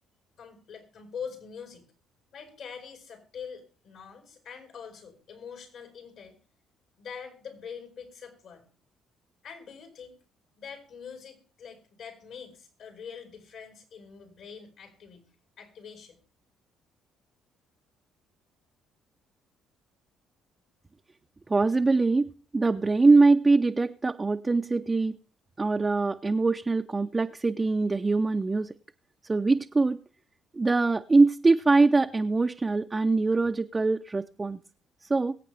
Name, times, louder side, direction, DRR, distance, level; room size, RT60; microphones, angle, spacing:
voice 1, 0.4-1.9 2.3-6.4 7.0-8.7 9.4-10.2 10.6-15.3 15.6-16.2, left 6 dB, 70° left, 4.6 m, -44 dB
voice 2, 21.5-25.2 25.6-28.7 29.3-30.0 30.5-34.6 35.1-35.3, right 3 dB, 25° right, 0.5 m, -23 dB
23.0 x 8.4 x 3.3 m
supercardioid pair, 70°, 0 cm